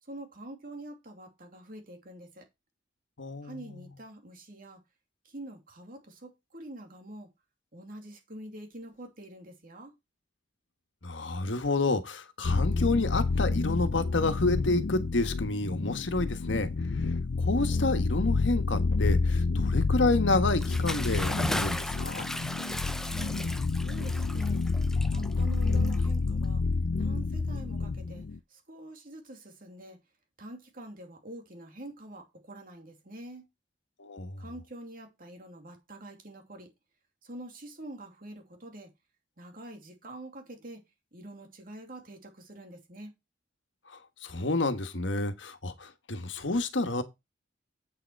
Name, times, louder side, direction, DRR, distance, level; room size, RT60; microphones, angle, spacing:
voice 1, 0.0-2.5 3.4-4.8 5.2-7.3 7.7-9.9 23.0-23.4 23.8-24.6 25.1-26.6 26.9-30.0 30.4-33.5 34.4-36.7 37.2-38.9 39.4-43.1, right 1 dB, 50° right, 2.8 m, -46 dB
voice 2, 3.2-3.9 11.0-16.7 16.9-22.3 34.0-34.4 43.9-47.0, left 2 dB, 85° left, 1.4 m, -29 dB
sound 1, 12.4-28.4, left 3 dB, 65° left, 0.5 m, -29 dB
Bathtub (filling or washing) / Splash splatter, 20.5-26.4, left 1 dB, 5° left, 0.6 m, -36 dB
8.3 x 6.6 x 4.6 m
head